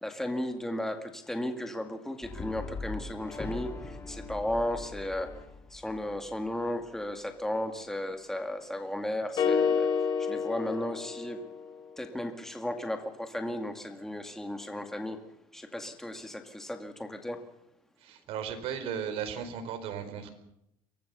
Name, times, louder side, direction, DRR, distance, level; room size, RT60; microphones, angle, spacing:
voice 1, 0.0-5.3 5.7-9.9 10.2-11.4 12.0-15.2 15.5-17.4, left 1 dB, 5° left, 6 dB, 2.2 m, -35 dB
Brass instrument, 2.2-6.5, left 3 dB, 20° left, 2.7 m, -41 dB
sound 1, 9.4-11.7, left 6 dB, 40° left, 4.2 m, -28 dB
voice 2, 18.0-20.3, right 7 dB, 60° right, 8 dB, 4.3 m, -36 dB
24.0 x 17.0 x 6.9 m, 0.80 s
cardioid pair, 125°, 11 cm